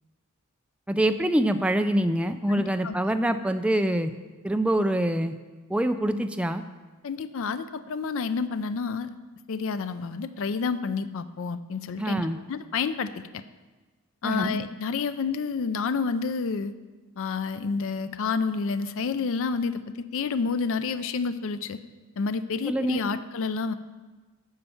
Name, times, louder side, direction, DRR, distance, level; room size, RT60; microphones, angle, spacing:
voice 1, 0.9-4.1 4.4-5.4 5.7-6.6 12.0-12.4 14.2-14.6 22.7-23.0, right 1 dB, 5° right, 8 dB, 0.4 m, -25 dB
voice 2, 2.5-2.9 7.0-9.1 9.5-13.4 14.2-16.7 17.2-21.8 22.2-23.7, left 5 dB, 60° left, 12 dB, 0.4 m, -29 dB
9.6 x 5.6 x 7.0 m, 1.3 s
head